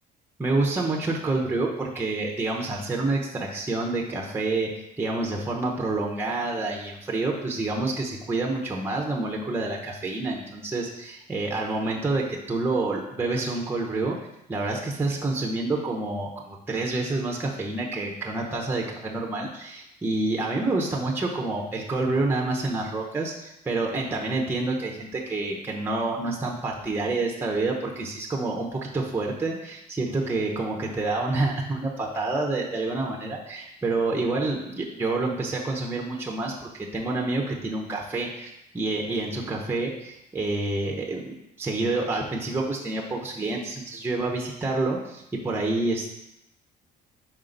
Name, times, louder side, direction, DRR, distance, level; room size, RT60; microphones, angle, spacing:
voice 1, 0.4-14.2 14.5-46.1, right 2 dB, 15° right, 0 dB, 0.9 m, -28 dB
5.6 x 4.2 x 3.9 m, 0.84 s
cardioid pair, 110°, 17 cm